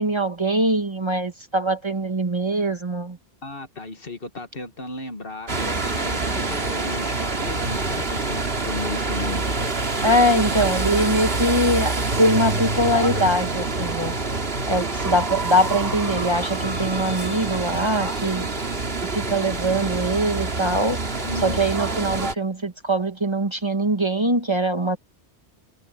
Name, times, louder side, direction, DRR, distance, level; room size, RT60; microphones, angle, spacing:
voice 1, 0.0-3.2 10.0-14.1 14.7-18.5 19.1-21.0 21.4-25.0, right 1 dB, 25° right, 1.4 m, -22 dB
voice 2, 3.4-9.5 21.3-21.6, left 2 dB, 60° left, 1.9 m, -35 dB
sound 1, 5.5-22.3, right 3 dB, 65° right, 2.6 m, -26 dB
omnidirectional pair, 1.1 m